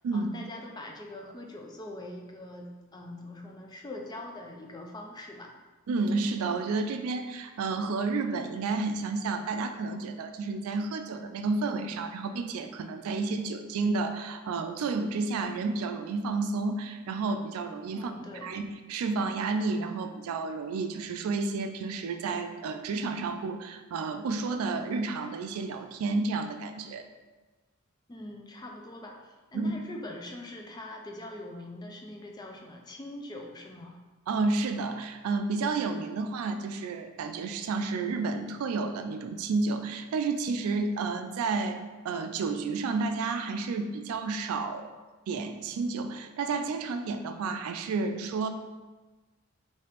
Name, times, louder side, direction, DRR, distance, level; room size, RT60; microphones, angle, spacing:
voice 1, 0.1-5.5 17.9-18.5 28.1-34.0, left 1 dB, 20° left, 1 dB, 0.3 m, -43 dB
voice 2, 5.9-18.1 18.4-27.0 29.5-29.7 34.3-44.9 45.3-48.5, right 3 dB, 85° right, 9 dB, 0.3 m, -31 dB
3.3 x 2.8 x 2.9 m, 1.2 s
head